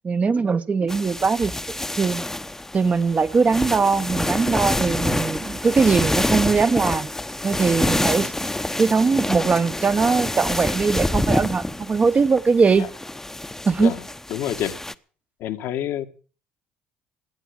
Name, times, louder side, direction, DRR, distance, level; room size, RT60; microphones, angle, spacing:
voice 1, 0.0-1.5 2.0-2.2 2.7-7.1 7.4-8.5 8.8-12.9 13.7-13.9, right 5 dB, 35° right, 1.1 m, -20 dB
sound 1, 0.9-14.9, left 1 dB, 10° left, 0.9 m, -27 dB
voice 2, 14.3-14.8 15.4-16.1, left 11 dB, 70° left, 1.5 m, -27 dB
17.5 x 10.5 x 6.5 m
hypercardioid pair, 60°, 4 cm